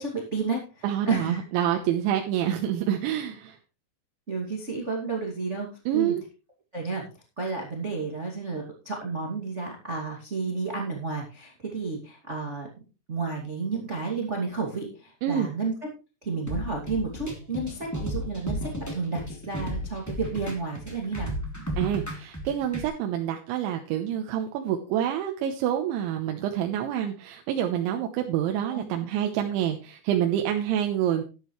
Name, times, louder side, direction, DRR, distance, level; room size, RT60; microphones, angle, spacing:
voice 1, 0.0-1.4 4.3-5.7 5.9-6.2 6.7-7.0 7.4-12.7 13.1-15.7 16.2-21.3 28.7-28.8, right 4 dB, 45° right, -1 dB, 0.8 m, -31 dB
voice 2, 0.8-3.6 5.9-6.2 15.2-15.5 21.8-31.2, right 10 dB, 75° right, 4 dB, 3.1 m, -27 dB
sound 1, 16.5-22.9, equal, 5° left, 1.3 m, -34 dB
12.5 x 11.5 x 3.2 m, 0.32 s
omnidirectional pair, 5.9 m